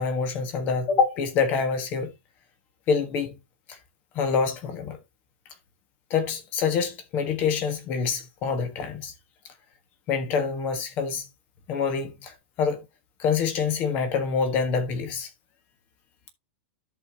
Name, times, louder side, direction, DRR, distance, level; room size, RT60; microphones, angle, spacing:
voice 1, 0.0-2.1 2.9-3.4 3.7-3.8 4.1-5.0 6.1-9.1 10.1-11.3 11.7-12.8 13.2-15.3, left 5 dB, 25° left, 1.4 m, -26 dB
10.5 x 6.7 x 2.8 m
supercardioid pair, 180°, 7 cm